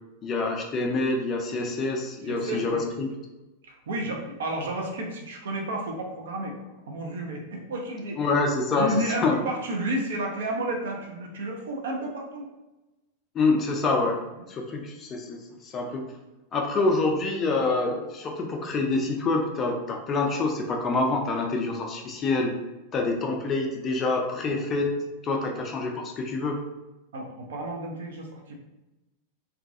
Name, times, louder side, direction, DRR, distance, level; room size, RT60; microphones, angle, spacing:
voice 1, 0.2-3.1 8.2-9.4 13.3-14.2 14.5-16.0 16.5-22.5 22.9-24.9 25.2-26.6, left 3 dB, 25° left, 2 dB, 0.4 m, -26 dB
voice 2, 2.2-2.9 3.9-6.6 6.9-8.2 8.7-12.5 17.6-17.7 24.5-24.6 25.4-25.5 27.1-28.5, right 1 dB, 60° right, 0 dB, 0.5 m, -31 dB
2.3 x 2.2 x 2.5 m, 1.0 s
figure-of-eight pair, 90°, 0 cm